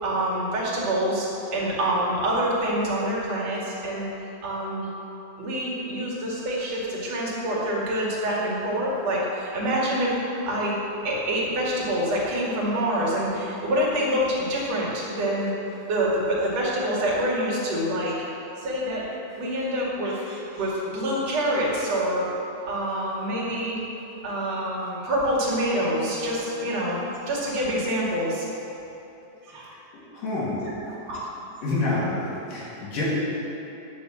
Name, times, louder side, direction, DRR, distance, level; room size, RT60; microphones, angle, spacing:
voice 1, 0.0-4.1 4.4-4.9 5.4-10.1 10.5-10.7 11.0-15.5 15.9-18.1 18.6-19.1 19.4-22.3 22.7-23.8 24.2-27.0 27.3-28.5 29.4-29.7 30.9-31.2, right 1 dB, 50° right, -5 dB, 3.3 m, -26 dB
voice 2, 29.9-30.6 31.6-33.0, left 2 dB, 75° left, -7 dB, 4.1 m, -28 dB
10.5 x 7.5 x 7.4 m, 3.0 s
omnidirectional pair, 3.9 m